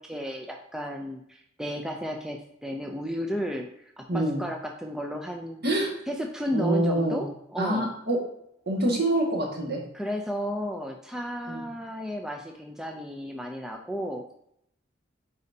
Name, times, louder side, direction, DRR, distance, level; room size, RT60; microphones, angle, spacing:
voice 1, 0.0-5.6 6.1-7.9 9.9-14.2, equal, 5° right, 2 dB, 0.4 m, -33 dB
voice 2, 4.1-4.4 5.6-5.9 6.5-7.2 7.6-8.2 8.7-9.8 11.5-11.6, right 1 dB, 55° right, -2 dB, 1.8 m, -25 dB
9.3 x 4.0 x 2.7 m, 0.74 s
head